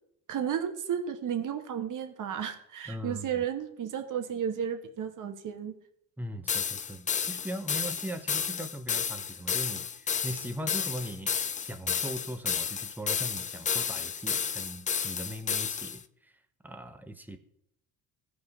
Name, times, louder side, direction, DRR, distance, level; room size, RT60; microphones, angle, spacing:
voice 1, 0.3-5.7, right 8 dB, 50° right, 8 dB, 1.3 m, -33 dB
voice 2, 2.9-3.4 6.2-11.3 11.6-16.3 16.6-17.4, right 1 dB, 5° right, 8 dB, 0.9 m, -39 dB
sound 1, 6.5-16.0, left 7 dB, 20° left, 0.3 m, -31 dB
15.0 x 5.1 x 3.6 m, 0.74 s
supercardioid pair, 85°, 39 cm